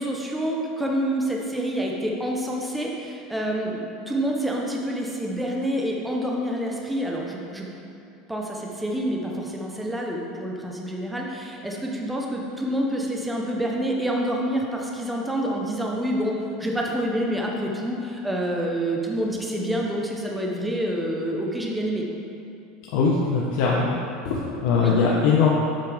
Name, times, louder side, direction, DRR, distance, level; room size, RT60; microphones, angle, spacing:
voice 1, 0.0-3.8 4.1-7.7 8.3-22.1 24.8-25.0, equal, 5° right, -1 dB, 0.5 m, -27 dB
voice 2, 22.9-23.9 24.2-25.5, left 5 dB, 55° left, -4 dB, 0.7 m, -21 dB
7.6 x 5.2 x 3.4 m, 2.7 s
cardioid pair, 180°, 0 cm